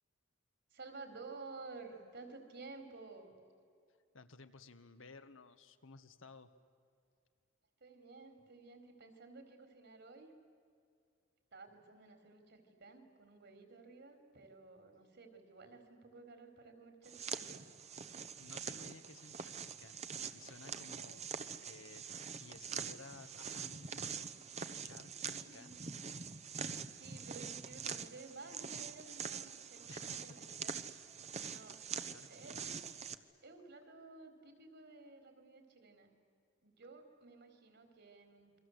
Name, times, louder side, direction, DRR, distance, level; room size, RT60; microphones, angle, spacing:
voice 1, 0.7-3.4 7.8-10.3 11.5-17.5 25.3-25.8 27.0-30.8 31.5-31.9 32.3-32.9 33.4-36.1 36.6-38.6, right 3 dB, 60° right, 7 dB, 4.2 m, -54 dB
voice 2, 4.1-6.5 18.4-20.0 20.3-22.0 22.3-24.3 24.8-25.8 29.9-30.3 31.4-31.5 32.1-32.3, left 3 dB, 80° left, 9 dB, 1.6 m, -56 dB
sound 1, 17.0-33.1, right 6 dB, 35° right, 1.0 m, -44 dB
29.0 x 23.5 x 8.1 m, 2.4 s
head